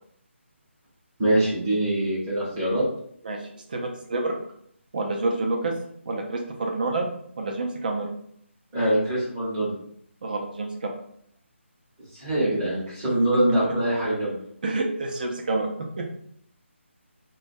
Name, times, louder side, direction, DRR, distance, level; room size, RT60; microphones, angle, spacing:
voice 1, 1.2-2.8 8.7-9.7 12.1-14.4, right 1 dB, 20° right, -9 dB, 0.8 m, -23 dB
voice 2, 3.2-4.4 4.9-5.7 6.1-7.1 7.4-8.2 10.2-10.9 13.6-13.7 14.6-15.7 16.0-16.1, right 2 dB, 40° right, 1 dB, 0.5 m, -28 dB
2.2 x 2.1 x 2.6 m, 0.66 s
hypercardioid pair, 170°, 7 cm